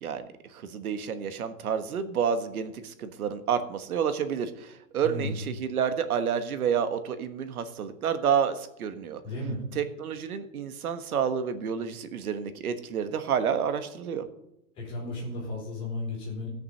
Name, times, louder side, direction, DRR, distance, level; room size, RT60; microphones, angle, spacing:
voice 1, 0.0-9.2 9.7-14.3, right 7 dB, 75° right, 11 dB, 1.5 m, -29 dB
voice 2, 5.0-5.5 9.2-9.6 14.8-16.5, left 2 dB, 10° left, -4 dB, 3.7 m, -34 dB
16.5 x 6.8 x 5.7 m, 0.80 s
hypercardioid pair, 180°, 44 cm